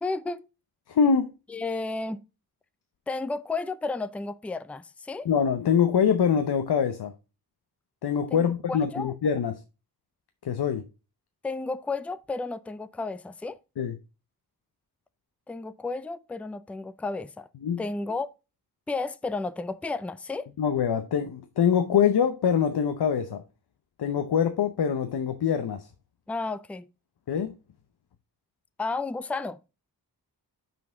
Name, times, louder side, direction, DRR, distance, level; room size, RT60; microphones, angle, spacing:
voice 1, 0.0-0.5 1.5-2.2 3.1-5.3 8.3-8.4 8.7-9.1 11.4-13.6 15.5-17.5 17.8-18.3 18.9-20.5 26.3-26.9 28.8-29.6, left 3 dB, 5° left, 0.4 m, -32 dB
voice 2, 0.9-1.3 5.2-7.1 8.0-9.6 10.4-10.9 13.8-14.0 17.6-17.8 20.6-23.4 24.0-25.9 27.3-27.6, left 7 dB, 90° left, 0.8 m, -24 dB
6.0 x 5.3 x 3.8 m
wide cardioid pair, 100°, 38 cm